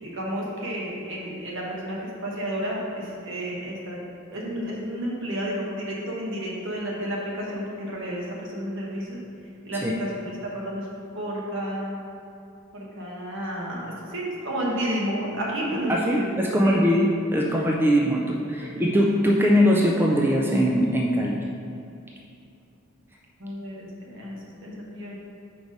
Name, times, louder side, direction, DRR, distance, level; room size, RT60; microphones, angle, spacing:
voice 1, 0.0-4.0 4.3-9.2 9.6-10.9 11.1-12.0 12.7-16.8 18.6-18.8 23.4-25.2, equal, 65° right, -3 dB, 1.1 m, -31 dB
voice 2, 15.9-21.4, equal, 10° right, -2 dB, 0.3 m, -21 dB
4.6 x 4.0 x 5.1 m, 2.6 s
head